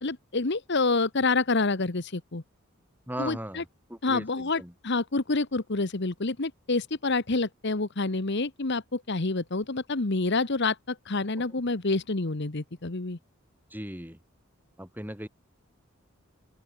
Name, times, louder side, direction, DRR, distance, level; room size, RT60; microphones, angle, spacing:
voice 1, 0.0-2.4 3.2-3.6 4.0-13.2, left 3 dB, 55° left, 1.3 m, -28 dB
voice 2, 3.1-4.7 13.7-14.2 14.8-15.3, right 1 dB, 10° right, 7.3 m, -38 dB
open air
head